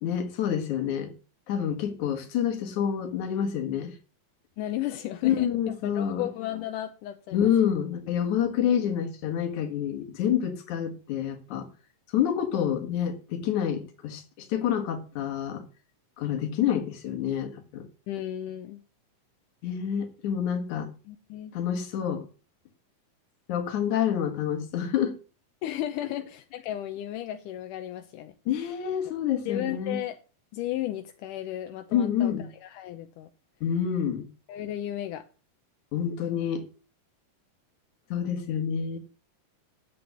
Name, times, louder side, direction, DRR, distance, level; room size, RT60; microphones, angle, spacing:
voice 1, 0.0-1.1 1.5-4.0 5.2-6.3 7.3-11.7 12.1-15.7 16.2-17.9 19.6-20.9 21.5-22.3 23.5-25.2 28.5-30.0 31.9-32.5 33.6-34.3 35.9-36.6 38.1-39.0, left 9 dB, 65° left, 2.9 m, -28 dB
voice 2, 4.6-5.5 5.8-7.7 18.1-18.8 21.1-21.5 25.6-28.3 29.5-30.2 30.5-32.3 32.6-33.3 34.5-35.2, left 13 dB, 85° left, 2.3 m, -34 dB
9.6 x 7.9 x 6.6 m
omnidirectional pair, 3.7 m